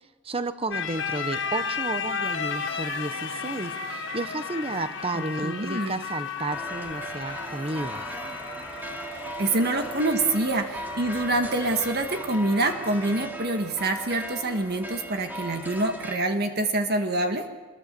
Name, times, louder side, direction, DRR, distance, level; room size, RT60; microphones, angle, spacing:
voice 1, 0.2-8.0, right 2 dB, 30° right, 11 dB, 1.0 m, -32 dB
sound 1, 0.7-13.3, left 6 dB, 60° left, 1.5 m, -35 dB
sound 2, 1.3-9.1, right 4 dB, 75° right, 4.2 m, -43 dB
voice 2, 5.1-6.0 9.4-17.5, right 2 dB, 50° right, 5 dB, 1.7 m, -26 dB
sound 3, 6.5-16.2, right 1 dB, 10° right, 2.5 m, -38 dB
25.5 x 22.0 x 6.9 m, 1.2 s
head